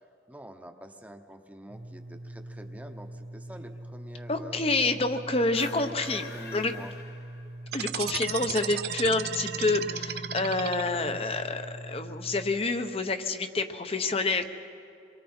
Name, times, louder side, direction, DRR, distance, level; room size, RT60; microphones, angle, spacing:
voice 1, 0.3-4.6 5.7-5.9 6.3-6.9, right 1 dB, 10° right, 5 dB, 1.0 m, -46 dB
sound 1, 1.7-12.5, right 1 dB, 80° right, 1.3 m, -43 dB
voice 2, 4.3-6.7 7.7-14.5, left 3 dB, 35° left, 8 dB, 0.9 m, -28 dB
sound 2, 5.4-7.8, left 4 dB, 60° left, 1.5 m, -45 dB
sound 3, 7.7-11.2, right 9 dB, 60° right, 0.6 m, -34 dB
28.0 x 22.5 x 4.4 m, 2.6 s
head